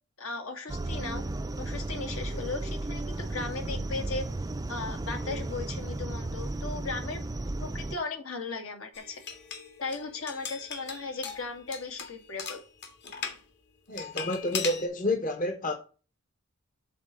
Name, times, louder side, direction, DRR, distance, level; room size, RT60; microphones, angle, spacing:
voice 1, 0.2-1.2 1.6-4.3 4.7-7.2 7.6-9.2 9.8-12.6, left 3 dB, 75° left, 1.9 m, -37 dB
sound 1, 0.7-8.0, right 2 dB, 15° right, 0.4 m, -34 dB
sound 2, 8.9-13.4 14.0-14.9, left 6 dB, 55° left, 1.7 m, -39 dB
voice 2, 13.9-15.7, left 1 dB, 40° left, 1.0 m, -30 dB
7.1 x 4.1 x 6.1 m
head